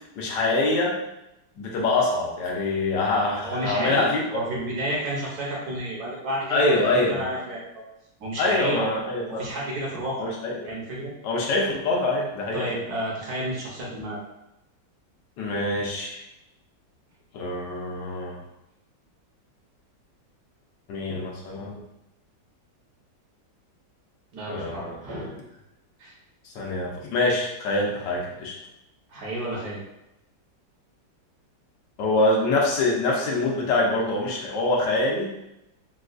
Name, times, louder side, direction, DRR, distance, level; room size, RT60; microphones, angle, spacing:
voice 1, 0.2-1.0 1.6-4.2 4.6-4.7 6.5-7.2 8.4-9.4 10.2-10.6 11.2-12.7 15.4-16.2 17.3-18.4 20.9-21.8 24.5-25.0 26.4-28.5 32.0-35.3, left 2 dB, 80° left, -2 dB, 1.4 m, -25 dB
voice 2, 3.4-7.8 8.2-8.9 9.3-10.3 10.6-11.1 12.5-14.2 24.3-25.4 26.0-26.1 29.1-29.8, right 1 dB, 65° right, -4 dB, 1.3 m, -31 dB
4.1 x 2.2 x 2.4 m, 0.89 s
omnidirectional pair, 1.9 m